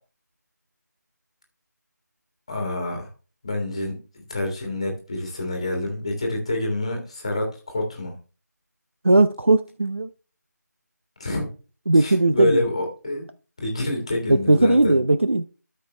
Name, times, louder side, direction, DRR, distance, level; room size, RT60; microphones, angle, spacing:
voice 1, 2.5-3.1 3.4-8.1 11.2-11.5 12.0-13.2 13.6-15.0, left 2 dB, 20° left, 1.8 m, -27 dB
voice 2, 9.0-10.1 11.9-12.6 14.3-15.4, right 2 dB, 40° right, 0.5 m, -18 dB
13.0 x 5.3 x 3.3 m
figure-of-eight pair, 180°, 10 cm